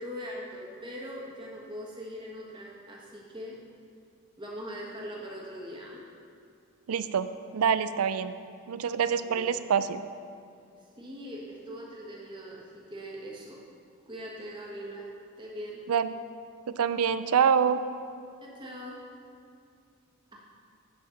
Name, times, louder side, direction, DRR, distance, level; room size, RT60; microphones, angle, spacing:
voice 1, 0.0-3.6 4.4-6.0 9.2-9.5 11.0-13.6 14.1-15.1 15.4-15.8 18.4-19.0, equal, 20° right, -4 dB, 1.5 m, -41 dB
voice 2, 6.9-8.3 8.7-10.0 15.9-16.1 16.7-17.8, right 7 dB, 85° right, 13 dB, 0.4 m, -26 dB
9.3 x 5.6 x 6.6 m, 2.4 s
head